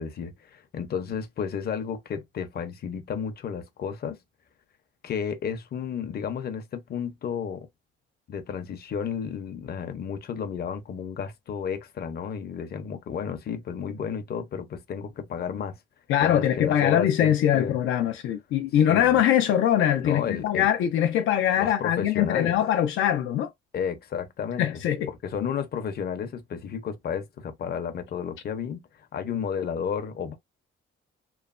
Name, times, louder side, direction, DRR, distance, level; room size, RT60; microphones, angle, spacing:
voice 1, 0.0-4.2 5.0-7.7 8.3-15.8 16.2-17.8 18.9-19.2 20.0-20.7 21.6-22.6 23.7-24.7 25.1-30.3, left 7 dB, 55° left, 0.7 m, -32 dB
voice 2, 16.1-23.5 24.6-25.1, left 10 dB, 85° left, 0.5 m, -22 dB
3.1 x 2.0 x 2.5 m
cardioid pair, 90°, 20 cm